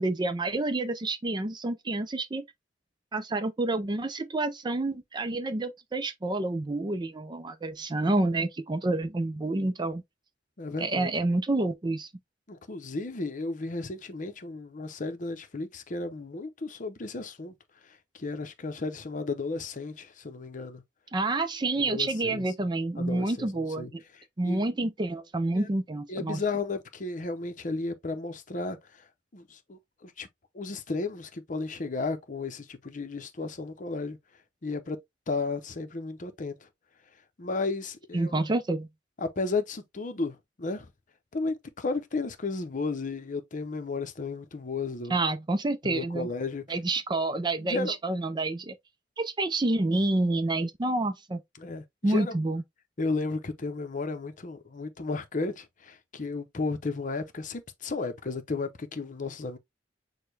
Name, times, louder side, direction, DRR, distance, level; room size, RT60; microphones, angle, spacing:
voice 1, 0.0-2.4 3.1-10.0 10.8-12.1 21.1-24.0 24.4-26.4 38.1-38.9 45.1-46.3 46.7-48.7 49.2-51.4 52.0-52.6, right 2 dB, 25° right, 0.5 m, -28 dB
voice 2, 10.6-11.1 12.5-17.5 18.1-20.8 21.9-22.5 23.0-23.5 23.8-23.9 24.4-24.6 25.5-25.7 26.1-29.0 29.3-30.3 30.5-34.2 34.6-35.0 35.3-36.6 37.4-38.4 39.2-40.9 41.3-45.2 45.8-46.6 47.6-47.9 51.6-52.3 53.0-59.6, left 3 dB, 45° left, 0.7 m, -33 dB
6.5 x 2.2 x 3.2 m
head